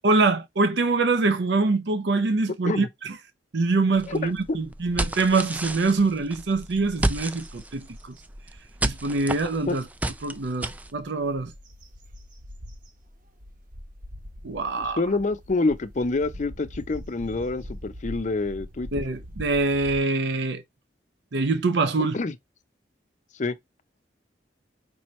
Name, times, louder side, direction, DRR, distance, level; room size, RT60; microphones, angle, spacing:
voice 1, 0.0-3.2 3.5-8.1 8.8-9.9 10.2-11.5 14.4-15.0 18.9-20.6 21.3-22.2, right 3 dB, 70° right, 0.6 m, -24 dB
sound 1, 4.0-10.9, right 1 dB, 10° right, 0.3 m, -32 dB
voice 2, 4.1-4.6 9.7-9.8 14.8-18.9 22.1-22.3 23.4-23.5, left 3 dB, 45° left, 0.5 m, -27 dB
sound 2, 5.5-5.6 6.2-6.4 6.7-8.2 8.8-8.9 10.7-20.0, equal, 50° right, 1.0 m, -42 dB
5.3 x 2.9 x 3.1 m
head